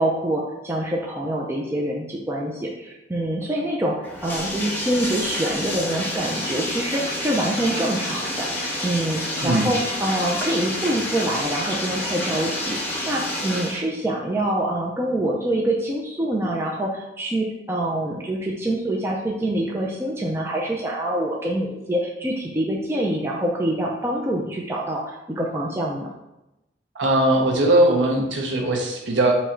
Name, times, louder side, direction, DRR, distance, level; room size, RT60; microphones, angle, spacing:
voice 1, 0.0-8.5 8.8-26.1, right 1 dB, 15° right, -3 dB, 0.4 m, -25 dB
Bathtub (filling or washing), 4.0-13.8, left 1 dB, 10° left, 0.7 m, -28 dB
voice 2, 27.0-29.3, right 1 dB, 75° right, 1 dB, 0.7 m, -19 dB
3.6 x 3.1 x 4.3 m, 0.95 s
head